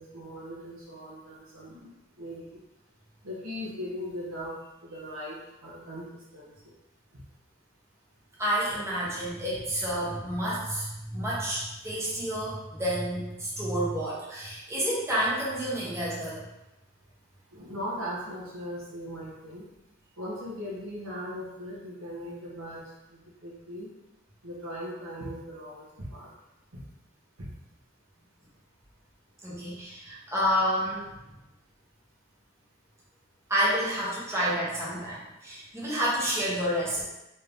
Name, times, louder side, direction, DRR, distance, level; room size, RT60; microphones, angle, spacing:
voice 1, 0.0-1.9 2.2-2.6 3.2-6.1 6.3-6.5 17.5-19.6 20.2-22.8 23.1-23.9 24.4-26.3 26.7-26.8 27.4-27.5, equal, 80° right, -6 dB, 1.2 m, -39 dB
voice 2, 8.4-16.4 29.4-31.1 33.5-37.0, equal, 15° right, -7 dB, 0.9 m, -29 dB
3.4 x 2.8 x 3.4 m, 0.95 s
head